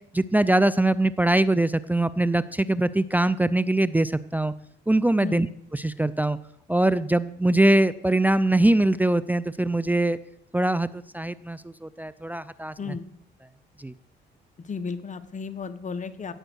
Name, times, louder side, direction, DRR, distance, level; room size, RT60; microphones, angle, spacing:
voice 1, 0.1-4.5 4.9-5.5 5.7-6.4 6.7-10.2 10.5-13.0 13.8-13.9, right 1 dB, 10° right, 16 dB, 0.5 m, -22 dB
voice 2, 14.6-16.3, left 5 dB, 40° left, 11 dB, 1.3 m, -34 dB
16.5 x 7.9 x 6.3 m, 0.72 s
cardioid pair, 90°, 20 cm